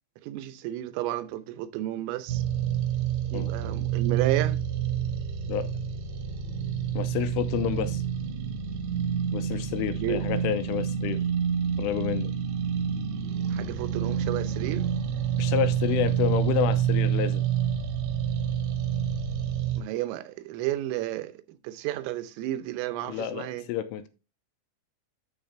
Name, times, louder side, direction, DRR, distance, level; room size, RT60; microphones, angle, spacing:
voice 1, 0.2-2.4 3.3-4.6 10.0-10.2 13.5-15.0 19.8-23.7, right 14 dB, 90° right, 3.5 m, -32 dB
sound 1, 2.3-19.8, right 9 dB, 75° right, 2.5 m, -28 dB
voice 2, 6.9-8.0 9.3-11.2 11.8-12.3 15.4-17.4 23.1-24.1, left 10 dB, 85° left, 3.3 m, -29 dB
9.2 x 7.1 x 3.3 m
omnidirectional pair, 5.8 m